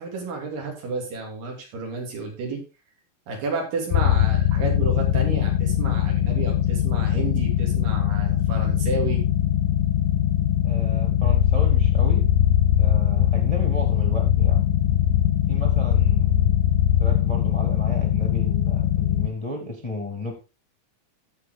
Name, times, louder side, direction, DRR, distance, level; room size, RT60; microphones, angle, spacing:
voice 1, 0.0-2.6 3.3-9.2, right 3 dB, 80° right, 1 dB, 4.4 m, -31 dB
sound 1, 3.9-19.3, left 11 dB, 80° left, 2.1 m, -21 dB
voice 2, 10.6-12.3 12.8-14.8 15.5-16.6 17.0-20.3, left 2 dB, 20° left, 1 dB, 0.9 m, -33 dB
14.5 x 5.4 x 3.7 m, 0.30 s
omnidirectional pair, 3.9 m